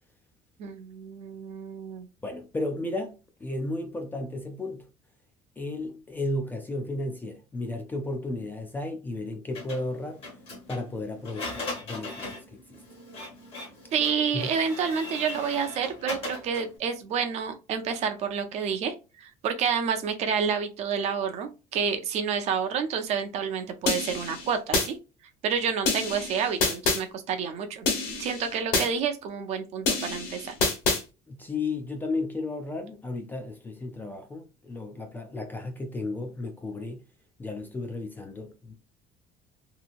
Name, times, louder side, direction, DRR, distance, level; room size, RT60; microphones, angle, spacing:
voice 1, 0.6-2.1 13.9-25.0 25.4-27.9 28.2-30.5, right 6 dB, 45° right, 0.5 m, -29 dB
voice 2, 2.2-4.9 5.6-10.3 10.7-12.8 14.3-14.5 31.3-37.0 37.4-38.7, left 2 dB, 10° left, 0.3 m, -34 dB
Printer, 9.5-16.8, left 2 dB, 40° left, 1.1 m, -39 dB
sound 1, 23.9-24.9 25.9-27.0 27.9-28.9 29.9-31.0, left 3 dB, 70° left, 1.3 m, -27 dB
2.9 x 2.6 x 2.4 m
cardioid pair, 170°, 15 cm